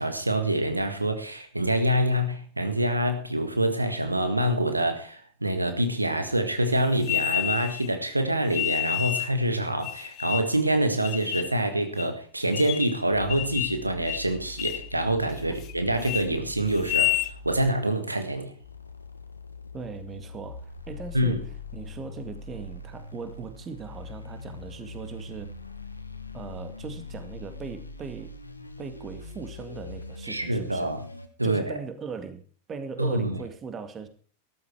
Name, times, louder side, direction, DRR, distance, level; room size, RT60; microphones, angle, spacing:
voice 1, 0.0-18.5 21.1-21.4 30.2-31.0 31.4-31.8 33.0-33.4, right 1 dB, 85° right, 1.8 m, -26 dB
sound 1, 7.0-7.9 8.5-9.3 9.8-10.6 11.0-11.5 12.0-12.1 12.5-13.0 13.3-13.8 14.1-14.3 14.6-14.9 15.3-15.7 16.0-16.2 16.7-17.3, left 17 dB, 40° left, 0.8 m, -29 dB
sound 2, 13.1-17.7 18.6-31.3, left 3 dB, 85° left, 1.6 m, -42 dB
voice 2, 19.7-21.5 21.7-25.5 26.3-28.3 28.8-30.9 31.4-32.4 32.7-34.1, right 5 dB, 25° right, 2.0 m, -39 dB
13.5 x 13.0 x 4.7 m
figure-of-eight pair, 90°, 0 cm